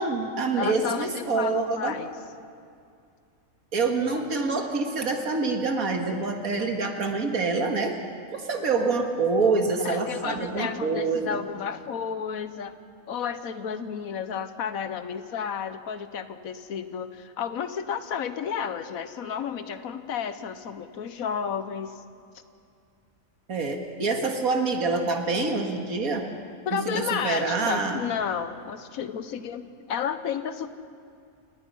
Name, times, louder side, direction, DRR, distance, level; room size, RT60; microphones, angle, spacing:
voice 1, 0.0-2.0 3.7-8.0 8.3-11.4 23.5-26.3 26.7-28.0, right 3 dB, 85° right, 4 dB, 2.3 m, -26 dB
voice 2, 0.6-2.1 9.8-12.7 13.1-22.0 26.7-30.7, left 7 dB, 80° left, 11 dB, 1.4 m, -32 dB
29.0 x 18.5 x 5.6 m, 2.4 s
omnidirectional pair, 1.5 m